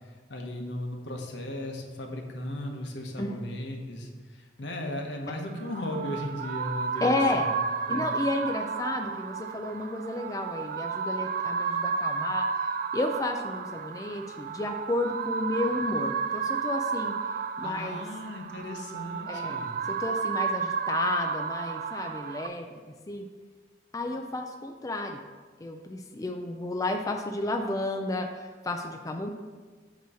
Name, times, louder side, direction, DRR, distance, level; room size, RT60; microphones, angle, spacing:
voice 1, 0.0-7.5 7.9-8.1 17.6-19.7, left 1 dB, 70° left, 2 dB, 1.0 m, -36 dB
sound 1, 5.5-22.5, right 5 dB, 50° right, 0.3 m, -32 dB
voice 2, 7.0-7.5 7.9-17.1 17.6-18.0 19.3-19.6 19.9-22.7 23.1-23.3 23.9-25.2 25.6-29.3, left 2 dB, 20° left, 3 dB, 0.4 m, -32 dB
8.2 x 3.0 x 6.2 m, 1.4 s
head